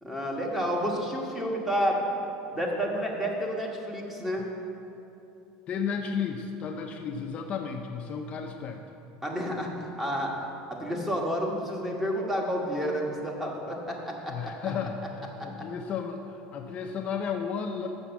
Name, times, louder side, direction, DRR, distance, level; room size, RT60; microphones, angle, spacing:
voice 1, 0.0-2.0 2.5-4.5 9.2-10.3 10.7-14.5, equal, 10° right, -1 dB, 1.3 m, -30 dB
voice 2, 5.7-8.8 14.3-17.9, left 6 dB, 40° left, 3 dB, 0.5 m, -33 dB
7.3 x 6.1 x 7.0 m, 2.9 s
supercardioid pair, 135°, 3 cm